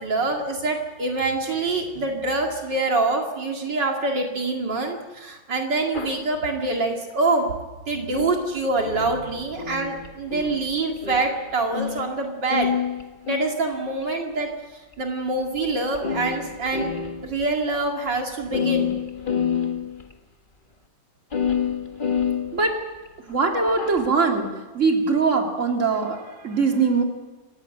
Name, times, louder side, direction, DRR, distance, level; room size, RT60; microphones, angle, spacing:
voice 1, 0.0-7.4 7.9-12.7 13.3-14.5 15.0-16.9 17.2-18.9, right 3 dB, 70° right, 1 dB, 2.9 m, -25 dB
sound 1, 5.9-6.2 8.1-12.2 12.5-14.0 14.9-15.0 15.6-15.7 15.9-17.5 17.8-17.9 18.1-18.2 18.4-20.1 21.3-23.1 23.7-24.1, left 7 dB, 30° left, 1.5 m, -28 dB
voice 2, 23.3-24.5 24.7-27.0, right 4 dB, 40° right, 2 dB, 3.2 m, -21 dB
27.5 x 16.0 x 9.0 m, 1.2 s
omnidirectional pair, 2.0 m